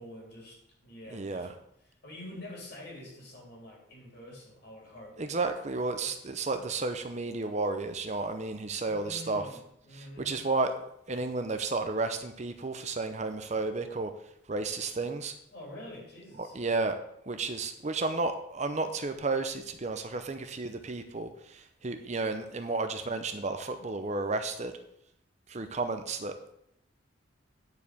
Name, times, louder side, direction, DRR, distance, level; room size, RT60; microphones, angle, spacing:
voice 1, 0.0-1.5 1.8-5.2 6.0-6.1 8.8-10.4 15.5-16.6, left 1 dB, 55° left, -2 dB, 3.6 m, -47 dB
voice 2, 1.1-1.5 5.2-9.4 9.9-10.7 11.1-14.1 14.5-15.3 16.4-17.0 17.3-24.7 25.5-26.5, right 3 dB, 35° right, 8 dB, 0.7 m, -32 dB
9.9 x 4.8 x 6.8 m, 0.75 s
head